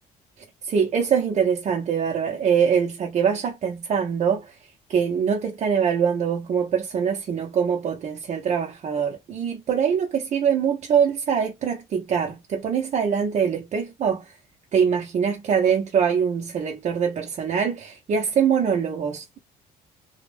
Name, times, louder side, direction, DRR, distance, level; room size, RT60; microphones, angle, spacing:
voice 1, 0.6-4.5 4.9-14.3 14.7-19.4, right 7 dB, 45° right, 0.5 m, -23 dB
2.2 x 2.0 x 3.1 m
cardioid pair, 110°, 17 cm